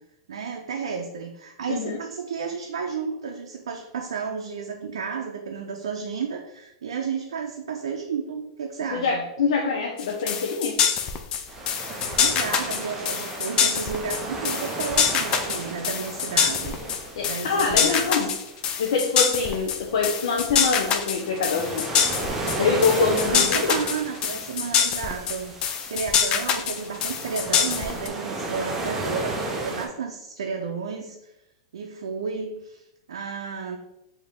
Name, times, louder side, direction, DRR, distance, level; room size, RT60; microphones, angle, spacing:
voice 1, 0.3-9.2 12.1-17.0 17.2-18.3 23.1-25.5 25.9-31.3 31.7-33.8, right 6 dB, 90° right, 2 dB, 0.5 m, -32 dB
voice 2, 8.9-10.9 17.2-18.3 18.8-21.9 22.6-23.7, left 5 dB, 80° left, 1 dB, 0.6 m, -24 dB
sound 1, 10.0-28.1, left 7 dB, 30° left, 0.5 m, -25 dB
sound 2, 11.5-29.9, right 2 dB, 15° right, 0.8 m, -34 dB
4.8 x 2.7 x 3.6 m, 0.87 s
hypercardioid pair, 135°, 3 cm